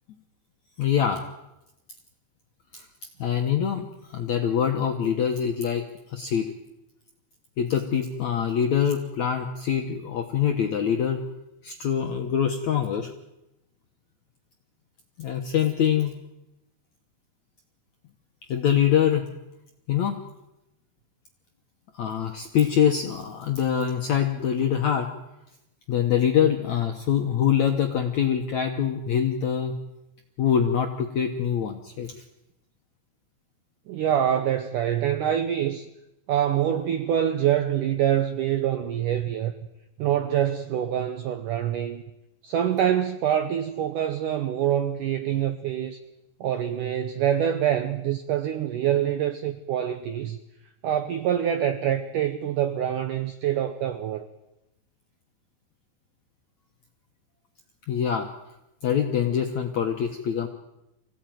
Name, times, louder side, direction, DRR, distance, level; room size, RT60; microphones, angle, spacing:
voice 1, 0.8-1.2 2.7-2.9 3.2-5.8 6.1-6.5 7.6-11.2 11.6-13.1 15.2-16.1 18.5-19.3 19.9-20.2 22.0-25.1 25.9-29.8 30.4-32.1 57.9-58.3 58.8-60.5, left 8 dB, 70° left, 4 dB, 1.7 m, -24 dB
voice 2, 33.9-35.9 36.3-39.5 40.0-42.0 42.4-46.0 46.4-50.4 50.8-54.3, right 10 dB, 80° right, 9 dB, 1.9 m, -25 dB
25.0 x 17.0 x 9.2 m, 0.91 s
omnidirectional pair, 5.0 m